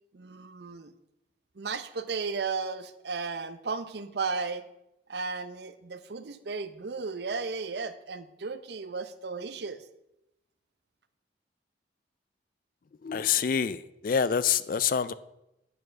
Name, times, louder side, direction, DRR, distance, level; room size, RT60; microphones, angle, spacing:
voice 1, 0.1-0.9 1.6-4.6 5.1-9.8, right 4 dB, 60° right, 12 dB, 0.6 m, -34 dB
voice 2, 13.0-15.1, left 7 dB, 45° left, 16 dB, 0.3 m, -26 dB
8.3 x 4.8 x 6.1 m, 0.86 s
head